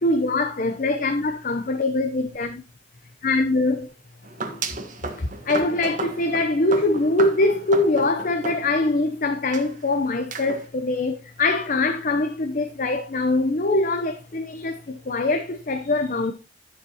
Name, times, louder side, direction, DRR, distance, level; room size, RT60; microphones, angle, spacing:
voice 1, 0.0-2.6 3.2-3.9 5.2-16.3, left 2 dB, 50° left, 0.8 m, -23 dB
sound 1, 4.2-9.1 9.5-9.7 10.3-10.7, right 3 dB, 45° right, 1.4 m, -33 dB
11.0 x 7.4 x 2.9 m
head